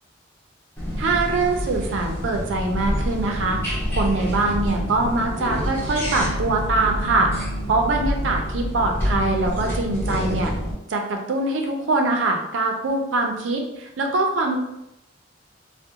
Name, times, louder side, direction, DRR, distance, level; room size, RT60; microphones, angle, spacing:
sound 1, 0.8-10.7, equal, 15° left, 0.6 m, -27 dB
voice 1, 1.0-7.3 7.7-10.5 10.9-14.6, right 2 dB, 75° right, 2 dB, 0.4 m, -23 dB
2.4 x 2.1 x 2.7 m, 0.86 s
head